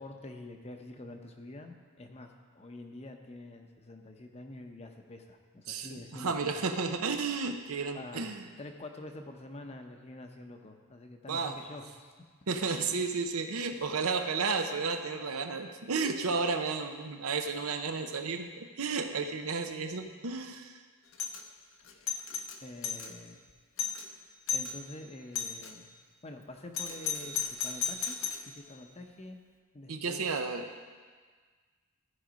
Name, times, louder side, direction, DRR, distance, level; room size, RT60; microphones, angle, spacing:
voice 1, 0.0-6.5 7.9-12.1 13.7-13.9 21.3-22.0 22.6-23.4 24.5-25.9 26.2-28.2 28.5-29.4 29.7-30.3, left 2 dB, 30° left, 4 dB, 0.7 m, -47 dB
voice 2, 5.7-8.4 11.3-11.6 12.5-20.8 29.9-30.7, right 4 dB, 90° right, 6 dB, 0.8 m, -32 dB
Doorbell, 21.1-21.4 21.9-23.1 23.5-23.6 23.8-24.1 24.5-24.8 25.4-25.7 26.7-28.5, left 7 dB, 70° left, 0.7 m, -34 dB
14.5 x 4.9 x 5.1 m, 1.5 s
head